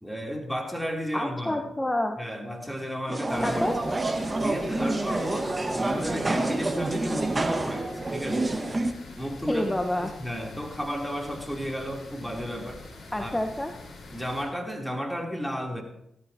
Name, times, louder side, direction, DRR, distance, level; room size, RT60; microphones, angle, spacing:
voice 1, 0.0-1.6 2.2-3.6 4.4-5.5 5.8-8.5 9.2-9.7 10.0-12.8 13.2-13.3 14.1-15.8, equal, ahead, 0 dB, 3.6 m, -33 dB
voice 2, 1.1-2.2 3.4-3.7 9.5-10.1 13.1-13.7, left 1 dB, 15° left, 5 dB, 1.3 m, -28 dB
sound 1, 3.1-8.9, right 2 dB, 30° right, 1.6 m, -28 dB
sound 2, 3.3-14.4, left 2 dB, 65° left, 4.8 m, -45 dB
17.0 x 14.0 x 3.0 m, 0.79 s
supercardioid pair, 40°, 0 cm